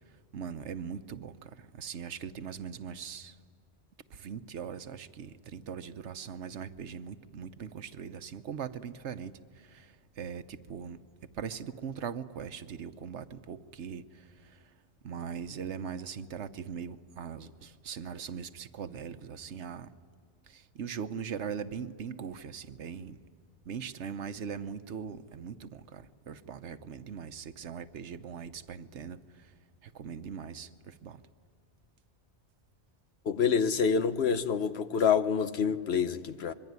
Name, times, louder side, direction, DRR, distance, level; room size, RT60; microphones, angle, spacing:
voice 1, 0.1-3.4 4.1-11.0 11.3-14.7 15.0-19.9 20.5-23.2 23.6-29.5 29.8-31.2, right 7 dB, 90° right, 1.2 m, -41 dB
voice 2, 33.3-36.5, left 6 dB, 70° left, 1.2 m, -27 dB
25.5 x 23.0 x 9.6 m
omnidirectional pair, 1.1 m